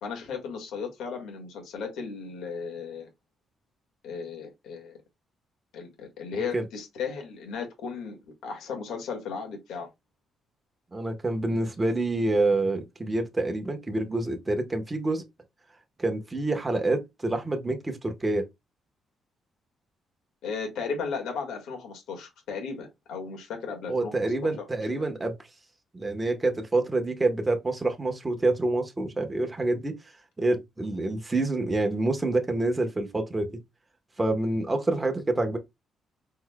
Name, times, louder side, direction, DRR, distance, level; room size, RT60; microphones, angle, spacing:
voice 1, 0.0-3.1 4.0-5.0 5.7-9.9 20.4-24.7 25.0-25.1, left 5 dB, 85° left, 1.8 m, -35 dB
voice 2, 6.3-6.6 10.9-15.2 16.0-18.4 23.9-25.4 25.9-29.9 30.4-33.6 34.2-35.6, right 2 dB, 15° right, 1.1 m, -27 dB
4.7 x 4.3 x 2.2 m
cardioid pair, 115°, 0 cm